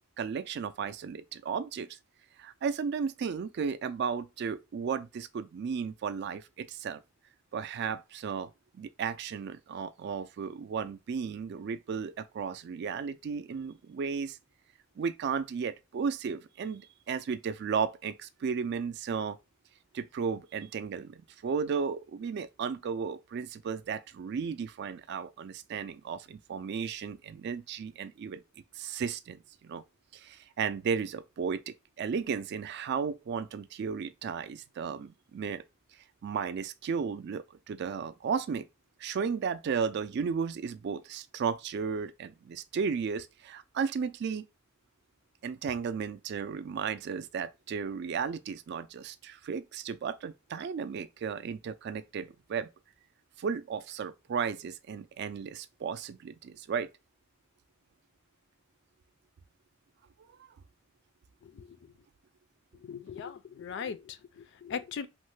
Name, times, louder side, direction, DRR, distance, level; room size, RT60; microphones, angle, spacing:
voice 1, 0.2-1.9 2.4-7.0 7.5-14.4 15.0-19.4 19.9-28.4 28.8-29.8 30.1-35.6 36.2-38.7 39.0-44.5 45.4-52.7 53.4-56.9, right 6 dB, 55° right, 0.3 m, -34 dB
voice 2, 61.4-61.8 62.8-65.1, left 6 dB, 55° left, 0.3 m, -39 dB
3.1 x 2.1 x 3.1 m
head